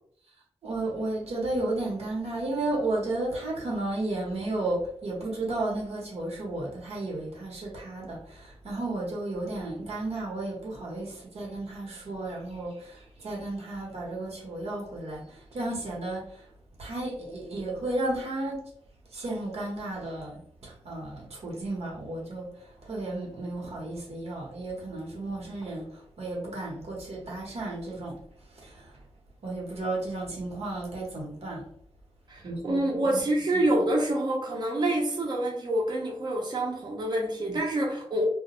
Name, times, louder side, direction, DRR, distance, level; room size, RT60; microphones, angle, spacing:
voice 1, 0.6-16.5 16.8-18.6 19.1-28.2 28.5-29.0 29.4-31.7 32.4-33.2 33.5-33.6 37.5-37.6, right 2 dB, 90° right, -2 dB, 0.9 m, -33 dB
voice 2, 32.3-38.2, right 1 dB, 45° right, -1 dB, 0.5 m, -27 dB
2.3 x 2.1 x 2.8 m, 0.62 s
wide cardioid pair, 120°, 11 cm